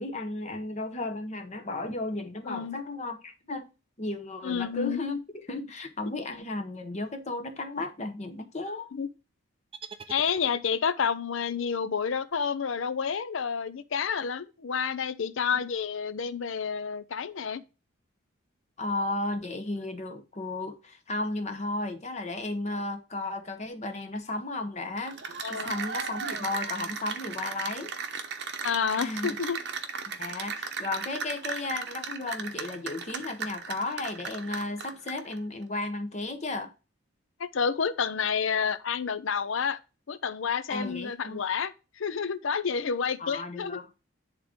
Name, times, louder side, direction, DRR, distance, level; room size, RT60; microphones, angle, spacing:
voice 1, 0.0-3.7 4.0-5.2 5.5-8.9 15.5-15.6 18.8-25.2 25.5-27.9 29.0-29.4 30.1-36.7 40.7-41.4 43.2-43.8, left 2 dB, 30° left, 0.8 m, -34 dB
voice 2, 2.5-2.8 4.4-5.0 6.1-6.2 8.9-9.1 10.1-17.6 25.4-25.7 28.6-29.6 37.4-39.8 40.1-43.8, left 6 dB, 70° left, 0.5 m, -29 dB
sound 1, 9.7-11.0, right 5 dB, 25° right, 0.4 m, -46 dB
Cheering / Applause, 25.0-35.3, right 5 dB, 50° right, 0.8 m, -36 dB
10.0 x 3.7 x 3.6 m
head